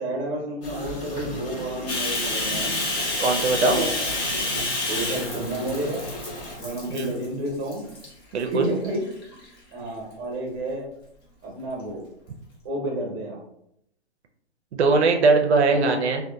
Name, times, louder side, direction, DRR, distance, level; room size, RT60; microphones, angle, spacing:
voice 1, 0.0-2.7 3.6-3.9 4.9-6.0 6.6-7.8 8.5-9.0 9.7-10.8 11.4-12.0 12.6-13.4 15.7-16.0, right 1 dB, 25° right, -1 dB, 0.8 m, -30 dB
sound 1, 0.6-6.6, equal, 55° left, 1.1 m, -36 dB
Bathtub (filling or washing), 1.9-7.3 7.7-8.1 8.6-9.4, left 2 dB, 25° left, 0.4 m, -29 dB
voice 2, 3.2-3.8 6.9-7.1 8.3-8.7 14.7-16.2, right 3 dB, 75° right, 5 dB, 0.5 m, -20 dB
2.6 x 2.2 x 2.2 m, 0.75 s
hypercardioid pair, 145°, 33 cm